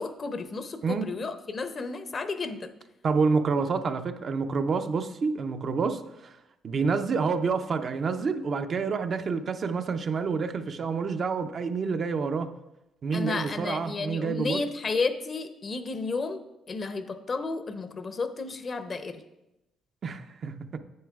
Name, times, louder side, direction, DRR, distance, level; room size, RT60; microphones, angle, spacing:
voice 1, 0.0-2.7 13.1-16.4 16.7-19.2, left 4 dB, 45° left, 10 dB, 0.7 m, -32 dB
voice 2, 3.0-6.3 6.6-12.5 13.0-14.6 20.0-20.8, right 5 dB, 55° right, 7 dB, 0.5 m, -28 dB
9.4 x 8.3 x 2.4 m, 0.92 s
supercardioid pair, 60°, 0 cm